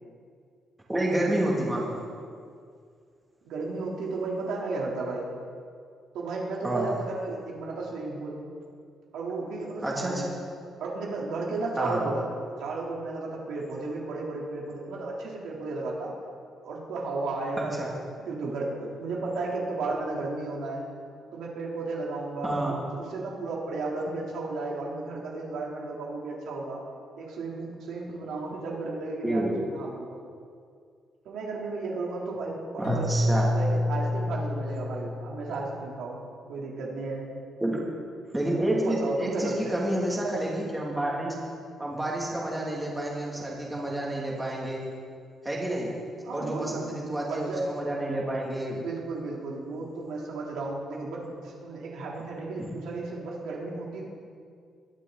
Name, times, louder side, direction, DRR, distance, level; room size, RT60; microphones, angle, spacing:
voice 1, 0.9-2.0 6.6-6.9 9.8-10.2 11.8-12.0 17.6-17.9 22.4-22.8 29.2-29.6 32.8-33.5 37.6-37.8 38.3-41.3 41.8-44.8 45.4-45.9 46.3-48.9 52.6-52.7, right 1 dB, 10° right, -4 dB, 2.6 m, -29 dB
voice 2, 3.4-5.3 6.1-8.4 9.1-10.3 10.8-12.3 12.6-16.1 16.6-17.7 18.3-20.8 21.3-26.8 27.2-30.2 31.2-36.2 36.5-37.3 38.7-39.8 46.2-46.9 47.2-47.6 48.7-54.1, right 3 dB, 85° right, -3 dB, 3.4 m, -34 dB
Keyboard (musical), 32.8-36.0, left 1 dB, 70° left, 3.0 m, -28 dB
21.5 x 11.5 x 4.1 m, 2.2 s
cardioid pair, 160°, 0 cm